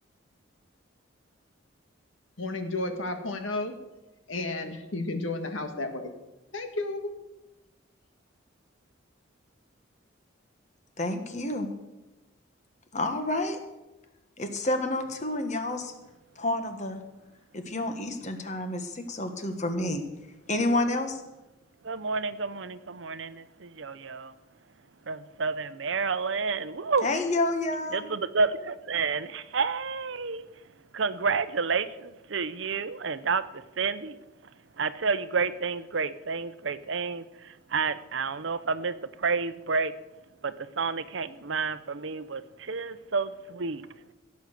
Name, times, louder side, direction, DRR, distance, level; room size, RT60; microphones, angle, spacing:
voice 1, 2.4-3.7 4.3-6.1 6.5-7.1, left 2 dB, 80° left, 1.7 m, -32 dB
voice 2, 11.0-11.7 12.9-13.6 14.4-15.9 16.4-17.0 17.5-20.0 20.5-21.2 27.0-28.1, left 2 dB, 35° left, 1.4 m, -29 dB
voice 3, 21.8-24.3 25.1-27.1 27.9-30.5 30.9-34.2 34.8-39.9 40.4-43.8, right 4 dB, 65° right, 0.7 m, -30 dB
16.5 x 8.3 x 6.5 m
head